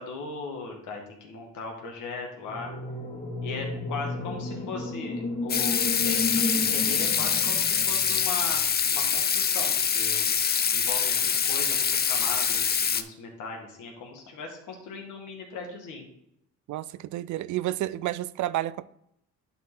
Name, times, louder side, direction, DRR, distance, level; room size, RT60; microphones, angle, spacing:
voice 1, 0.0-2.7 3.4-10.3 10.7-16.1, left 4 dB, 85° left, 1.9 m, -38 dB
sound 1, 2.4-8.6, left 3 dB, 50° left, 2.0 m, -33 dB
Water tap faucet / Sink (filling or washing), 5.5-13.0, left 7 dB, 30° left, 0.5 m, -25 dB
voice 2, 16.7-18.9, right 14 dB, 70° right, 0.4 m, -30 dB
11.0 x 4.3 x 3.8 m
cardioid pair, 90°, 30 cm